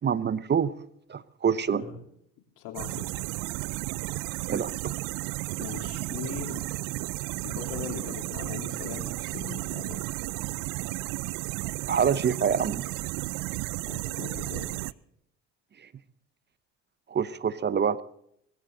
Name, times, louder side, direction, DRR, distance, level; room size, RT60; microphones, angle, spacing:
voice 1, 0.0-0.7 1.1-1.8 4.5-4.9 11.9-12.8 17.1-18.0, right 7 dB, 35° right, 17 dB, 0.9 m, -26 dB
voice 2, 2.6-3.1 5.6-6.6 7.4-10.0 13.9-14.9, left 7 dB, 75° left, 4 dB, 3.5 m, -40 dB
sound 1, 2.7-14.9, right 21 dB, 75° right, 0.5 m, -33 dB
21.0 x 14.5 x 3.9 m, 0.71 s
supercardioid pair, 80°, 32 cm